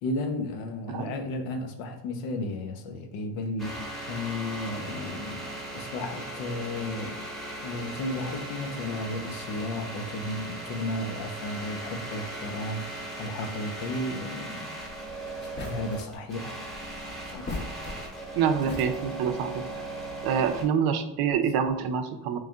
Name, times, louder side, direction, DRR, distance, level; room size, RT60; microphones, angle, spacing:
voice 1, 0.0-7.2 7.6-14.7 15.6-16.6 17.3-17.5, left 2 dB, 85° left, 5 dB, 0.8 m, -34 dB
sound 1, 3.6-20.7, right 2 dB, ahead, 0.9 m, -38 dB
sound 2, 15.0-15.1 15.4-16.2 17.2-18.3 18.6-19.3, left 2 dB, 25° left, 0.6 m, -38 dB
voice 2, 18.4-19.6 20.2-22.4, right 7 dB, 55° right, 8 dB, 0.5 m, -26 dB
3.2 x 2.7 x 3.5 m, 0.86 s
cardioid pair, 120°, 45 cm